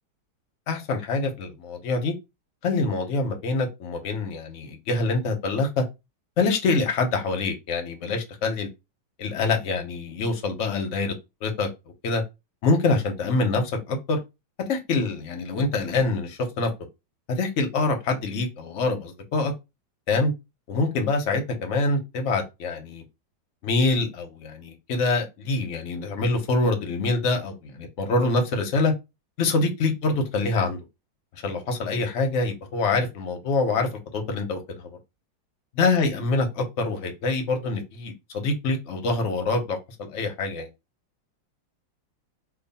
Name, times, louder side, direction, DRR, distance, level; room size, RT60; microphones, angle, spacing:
voice 1, 0.7-2.1 2.6-5.8 6.4-8.7 9.2-11.1 11.4-11.7 12.0-12.2 12.6-14.2 14.7-16.7 17.3-19.5 20.1-20.3 20.7-23.0 23.6-28.9 29.4-30.8 31.4-35.0 35.7-40.7, left 3 dB, 60° left, 0.8 m, -25 dB
3.0 x 2.3 x 4.0 m
omnidirectional pair, 2.2 m